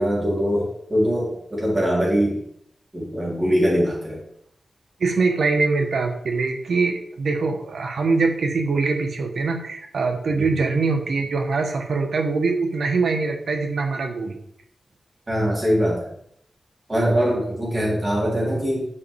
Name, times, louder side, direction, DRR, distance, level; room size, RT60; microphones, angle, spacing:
voice 1, 0.0-2.4 2.9-4.2 10.4-10.6 15.3-16.1 16.9-18.9, equal, 20° right, -4 dB, 2.4 m, -22 dB
voice 2, 5.0-14.4, right 4 dB, 75° right, 4 dB, 1.1 m, -23 dB
8.5 x 4.9 x 3.4 m, 0.70 s
wide cardioid pair, 160°, 0 cm